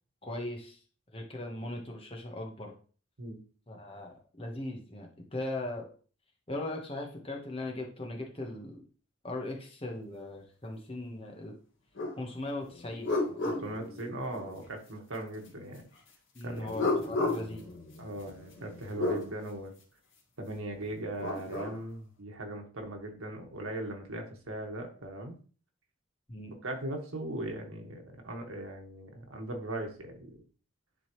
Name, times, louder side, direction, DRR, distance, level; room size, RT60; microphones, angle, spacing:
voice 1, 0.2-0.8 1.1-2.7 3.7-5.9 6.5-8.8 9.2-11.6 12.2-13.1 16.3-17.6 26.3-26.5, left 1 dB, 25° left, 1 dB, 1.3 m, -39 dB
sound 1, 12.0-12.2 12.6-14.6 16.5-19.2 20.9-21.8, left 2 dB, 70° left, 2.0 m, -34 dB
voice 2, 13.4-15.9 16.4-16.7 18.0-19.7 20.4-25.4 26.6-30.2, right 1 dB, 85° right, 3 dB, 1.6 m, -39 dB
10.5 x 4.0 x 3.1 m, 0.40 s
head